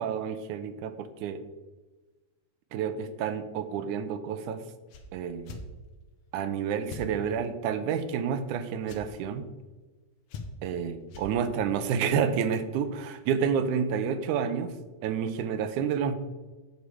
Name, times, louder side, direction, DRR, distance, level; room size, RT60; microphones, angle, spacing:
voice 1, 0.0-1.4 2.7-4.6 5.1-5.6 6.3-9.4 10.6-14.7 15.0-16.1, right 7 dB, 85° right, 11 dB, 2.1 m, -29 dB
sound 1, 4.9-5.1 5.4-5.6 6.9-7.1 8.8-9.0 10.3-10.7 11.1-11.3, left 5 dB, 65° left, 2.1 m, -41 dB
8.3 x 7.7 x 4.8 m, 1.2 s
omnidirectional pair, 3.5 m